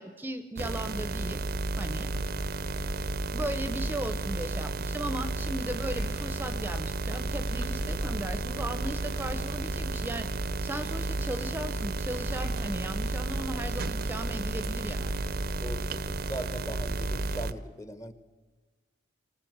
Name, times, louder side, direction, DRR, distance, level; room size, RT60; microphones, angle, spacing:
voice 1, 0.0-1.4 1.8-2.1 3.3-10.3 10.6-15.1, right 1 dB, 10° right, 10 dB, 0.8 m, -37 dB
sound 1, 0.6-17.5, right 3 dB, 50° right, 0.7 m, -33 dB
sound 2, 2.1-17.4, left 1 dB, 45° left, 0.8 m, -42 dB
voice 2, 15.6-18.1, right 1 dB, 15° left, 12 dB, 1.0 m, -40 dB
24.0 x 18.5 x 8.0 m, 1.3 s
head